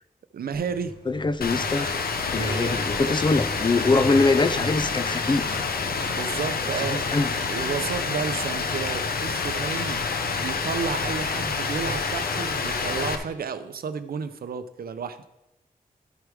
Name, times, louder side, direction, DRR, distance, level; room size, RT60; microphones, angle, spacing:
voice 1, 0.3-1.0 2.3-3.2 6.1-7.0 7.3-15.2, right 6 dB, 90° right, 11 dB, 0.5 m, -32 dB
Truck, 0.5-12.8, left 2 dB, 70° left, 2.5 m, -42 dB
voice 2, 1.1-1.9 2.3-5.6 6.8-7.3, left 3 dB, 30° left, 13 dB, 0.5 m, -23 dB
Rain, 1.4-13.2, left 4 dB, 90° left, 0.8 m, -28 dB
13.0 x 4.8 x 4.7 m, 0.95 s
wide cardioid pair, 80°, 15 cm